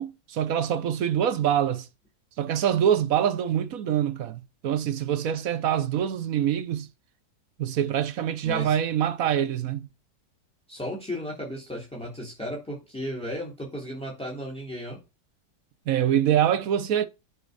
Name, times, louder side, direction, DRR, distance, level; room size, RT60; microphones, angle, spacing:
voice 1, 0.0-1.9 2.4-6.9 7.6-9.9 15.9-17.1, right 9 dB, 65° right, 1.1 m, -25 dB
voice 2, 8.4-8.8 10.7-15.0, equal, 5° left, 3.2 m, -35 dB
7.8 x 4.8 x 6.6 m
omnidirectional pair, 1.7 m